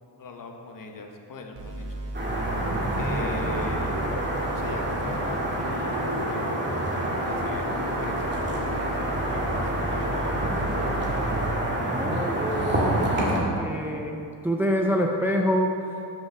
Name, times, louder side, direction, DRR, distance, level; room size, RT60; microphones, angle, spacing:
voice 1, 0.2-2.0 3.0-4.0 4.5-6.7 7.2-8.4 9.0-10.4 11.0-11.1, left 3 dB, 45° left, 2 dB, 1.0 m, -40 dB
sound 1, 1.6-11.6, right 1 dB, 70° right, 1.4 m, -37 dB
sound 2, 2.1-13.4, right 1 dB, 25° right, 1.8 m, -27 dB
voice 2, 11.9-12.9 13.2-15.7, equal, 5° right, 1 dB, 0.5 m, -26 dB
11.5 x 5.6 x 3.4 m, 2.6 s
cardioid pair, 95°, 45 cm